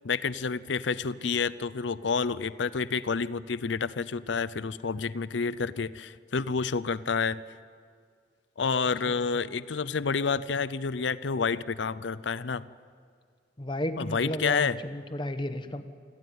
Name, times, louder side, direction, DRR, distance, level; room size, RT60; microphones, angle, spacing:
voice 1, 0.0-7.4 8.6-12.6 14.0-14.8, left 5 dB, 75° left, 17 dB, 0.6 m, -29 dB
voice 2, 13.6-15.8, left 1 dB, 25° left, 9 dB, 1.0 m, -33 dB
25.5 x 14.5 x 9.3 m, 2.1 s
head